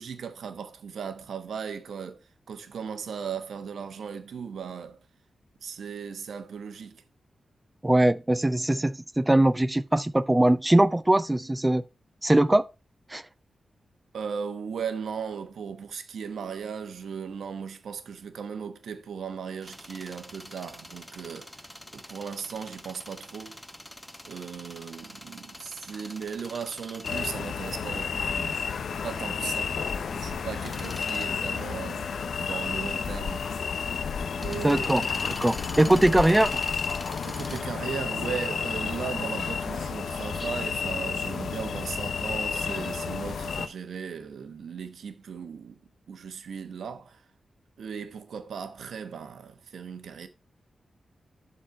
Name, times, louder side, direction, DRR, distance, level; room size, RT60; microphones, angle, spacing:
voice 1, 0.0-5.0 5.6-7.0 14.1-21.6 21.9-23.6 24.2-28.7 29.0-29.8 30.1-33.5 34.4-35.2 37.2-45.8 46.1-47.2 47.8-50.3, right 6 dB, 90° right, 1.3 m, -37 dB
voice 2, 7.8-11.8 12.2-12.6 13.1-13.2 34.6-36.5, right 1 dB, 10° right, 0.4 m, -21 dB
sound 1, 19.6-37.6, left 1 dB, 10° left, 0.9 m, -45 dB
sound 2, 27.0-43.7, left 6 dB, 70° left, 0.7 m, -31 dB
11.5 x 4.4 x 4.4 m
wide cardioid pair, 145°, 0 cm